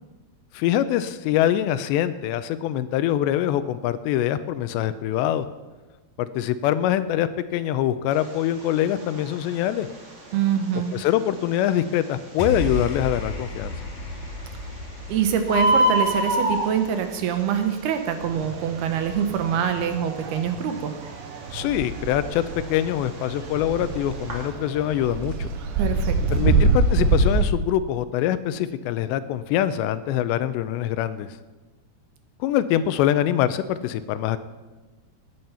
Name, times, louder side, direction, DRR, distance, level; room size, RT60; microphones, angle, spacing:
voice 1, 0.5-5.5 6.2-9.9 10.9-13.7 21.5-22.4 22.7-25.5 26.3-31.4 32.4-34.4, left 11 dB, 85° left, 13 dB, 2.9 m, -24 dB
Bird, 8.1-24.5, equal, 35° right, 3.4 m, -30 dB
voice 2, 10.3-10.9 15.1-21.0 25.8-26.5, right 8 dB, 70° right, 6 dB, 2.8 m, -25 dB
sound 1, 12.4-18.8, left 1 dB, 50° left, 2.3 m, -34 dB
sound 2, 18.2-27.5, right 3 dB, 90° right, 3.6 m, -26 dB
18.5 x 9.5 x 5.7 m, 1.2 s
omnidirectional pair, 5.0 m